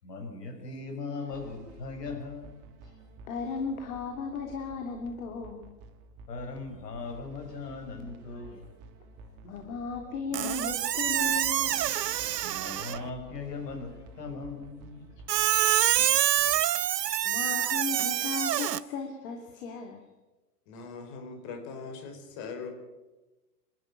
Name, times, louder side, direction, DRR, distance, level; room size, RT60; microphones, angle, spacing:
voice 1, 0.0-3.0 6.3-9.0 12.4-15.1, left 4 dB, 80° left, 5 dB, 6.0 m, -39 dB
sound 1, 1.3-16.6, right 3 dB, 40° right, 3.0 m, -52 dB
voice 2, 3.3-5.7 9.4-11.8 15.7-16.4 16.9-20.0, left 5 dB, 60° left, 3 dB, 3.2 m, -36 dB
Squeak, 10.3-13.1 15.3-18.8, right 11 dB, 85° right, 0.8 m, -26 dB
voice 3, 20.7-22.7, left 5 dB, 40° left, 5 dB, 5.0 m, -41 dB
27.5 x 12.5 x 8.7 m, 1.1 s
hypercardioid pair, 115°, 47 cm